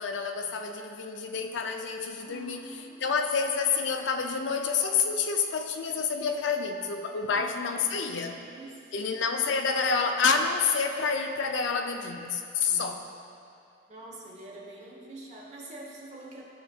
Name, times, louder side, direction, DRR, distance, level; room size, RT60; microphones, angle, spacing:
voice 1, 0.0-8.4 8.9-13.0, left 5 dB, 75° left, 5 dB, 0.5 m, -28 dB
voice 2, 2.2-3.1 7.2-7.9 8.3-9.3 12.7-13.0 13.9-16.4, right 2 dB, 35° right, -2 dB, 1.0 m, -46 dB
12.5 x 4.3 x 2.3 m, 2.5 s
head